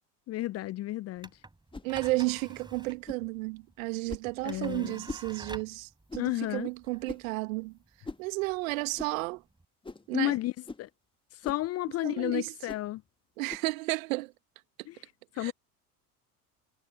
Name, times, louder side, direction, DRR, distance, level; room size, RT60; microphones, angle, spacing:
voice 1, 0.3-1.3 4.4-5.0 6.2-6.7 10.1-10.5 10.8-10.9 11.4-13.0 14.9-15.0 15.4-15.5, left 16 dB, 30° left, 0.7 m, -32 dB
sound 1, 1.2-9.7, right 2 dB, 10° right, 5.7 m, -50 dB
sound 2, 1.7-1.9 3.1-3.3 4.1-4.3 5.1-5.3 6.1-6.3 7.1-7.3 8.0-8.3 9.0-9.1 9.8-10.1 10.6-10.9 11.4-11.7 12.7-12.9 13.5-13.7, left 3 dB, 10° left, 1.8 m, -42 dB
voice 2, 1.8-7.7 8.2-9.4 10.1-10.4 12.0-12.5 13.4-14.3 15.4-15.5, right 22 dB, 60° right, 2.3 m, -32 dB
figure-of-eight pair, 70°, 47 cm